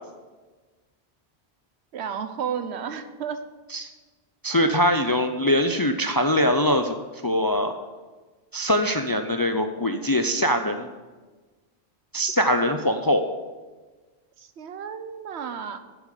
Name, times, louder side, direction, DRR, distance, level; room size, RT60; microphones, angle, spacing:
voice 1, 1.9-3.4 14.4-15.8, right 7 dB, 85° right, 10 dB, 1.1 m, -32 dB
voice 2, 4.4-7.0 7.2-7.7 8.5-10.9 12.1-13.2, equal, 30° left, 7 dB, 0.4 m, -22 dB
9.1 x 7.4 x 6.5 m, 1.3 s
omnidirectional pair, 1.1 m